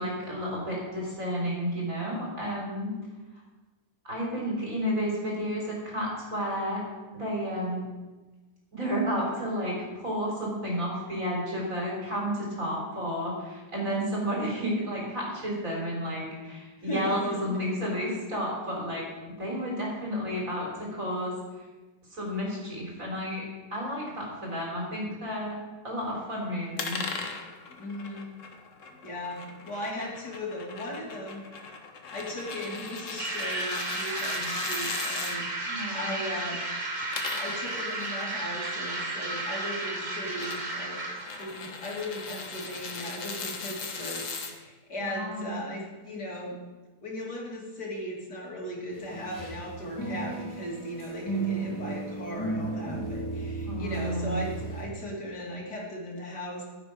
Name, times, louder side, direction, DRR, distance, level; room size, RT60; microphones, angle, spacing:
voice 1, 0.0-2.9 4.0-6.8 7.1-7.8 8.7-19.0 19.4-21.3 22.1-23.4 23.7-25.6 25.8-27.0 35.6-36.2 45.0-45.6 51.4-51.6 53.6-54.4, equal, 50° right, -3 dB, 4.3 m, -31 dB
voice 2, 16.8-17.4 27.8-28.3 29.0-31.4 32.1-36.7 37.4-44.3 44.5-46.6 47.0-56.6, left 1 dB, 75° left, -3 dB, 3.3 m, -37 dB
sound 1, 26.8-35.4 36.9-44.5, left 4 dB, 55° left, 1.5 m, -39 dB
sound 2, 33.2-41.5, right 2 dB, 30° right, 1.6 m, -33 dB
quiet-session-talk, 49.0-54.8, right 3 dB, 10° left, 3.3 m, -34 dB
15.0 x 7.9 x 5.2 m, 1.2 s
omnidirectional pair, 1.7 m